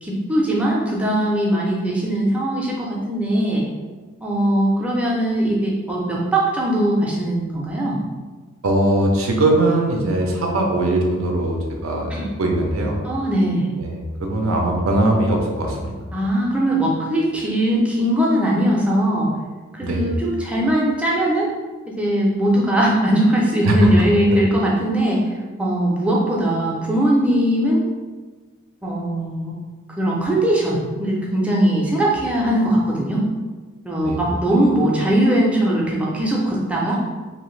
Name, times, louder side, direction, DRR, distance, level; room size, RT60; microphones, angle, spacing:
voice 1, 0.0-3.6 4.2-8.0 12.1-12.3 13.0-13.7 16.1-19.3 19.8-21.5 22.0-25.2 25.6-27.8 28.8-29.5 30.0-33.3 33.8-37.0, right 1 dB, 5° right, -4 dB, 0.4 m, -20 dB
voice 2, 8.6-12.1 12.4-13.0 13.8-15.9 19.8-20.1 23.6-23.9 34.0-34.3, right 1 dB, 85° right, 1 dB, 0.6 m, -20 dB
2.7 x 2.4 x 3.1 m, 1.3 s
head